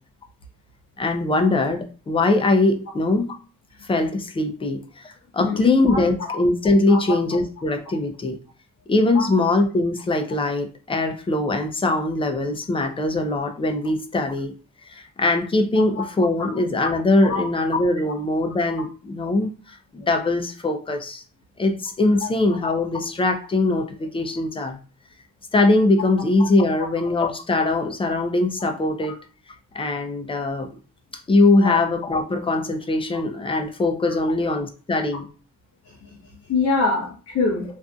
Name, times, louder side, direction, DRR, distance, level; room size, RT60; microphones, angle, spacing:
voice 1, 1.0-3.3 3.8-8.4 8.9-14.5 14.8-21.2 21.6-24.8 25.5-29.2 29.7-30.7 31.3-35.3, left 2 dB, 15° left, 5 dB, 0.4 m, -21 dB
voice 2, 5.4-6.0 6.9-7.2 9.1-9.2 16.0-16.1 17.3-17.4 22.2-22.3 31.6-31.8 36.5-37.6, left 3 dB, 50° left, -1 dB, 0.7 m, -24 dB
2.5 x 2.5 x 2.2 m, 0.36 s
cardioid pair, 95°, 34 cm